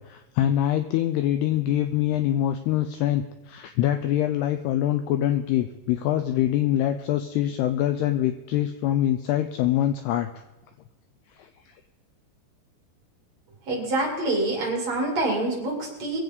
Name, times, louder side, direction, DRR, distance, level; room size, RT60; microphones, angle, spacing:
voice 1, 0.0-10.3 11.4-11.5, left 12 dB, 85° left, 9 dB, 2.3 m, -24 dB
voice 2, 13.7-16.2, right 2 dB, 40° right, 0 dB, 3.1 m, -26 dB
22.5 x 8.0 x 5.2 m, 1.1 s
omnidirectional pair, 5.4 m